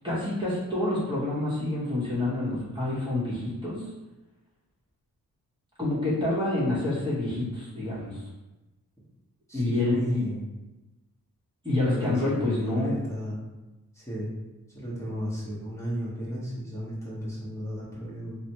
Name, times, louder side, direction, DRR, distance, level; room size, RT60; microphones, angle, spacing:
voice 1, 0.0-3.9 5.8-8.2 9.5-10.2 11.6-12.9, left 2 dB, 15° right, -10 dB, 1.1 m, -28 dB
voice 2, 9.5-10.5 11.8-13.4 13.9-14.3 14.7-18.4, equal, 10° left, -8 dB, 1.2 m, -33 dB
3.1 x 2.1 x 2.9 m, 1.1 s
cardioid pair, 60°, 36 cm